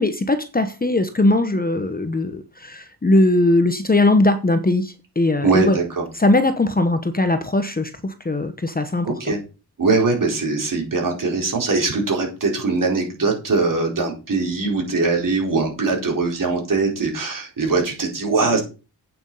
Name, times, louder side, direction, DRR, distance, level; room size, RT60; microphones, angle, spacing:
voice 1, 0.0-5.8 6.2-9.1, left 2 dB, 20° left, 1.0 m, -19 dB
voice 2, 5.4-6.0 9.0-9.4 9.8-18.6, right 3 dB, 50° right, 4.5 m, -21 dB
8.9 x 7.0 x 5.5 m
wide cardioid pair, 125°, 40 cm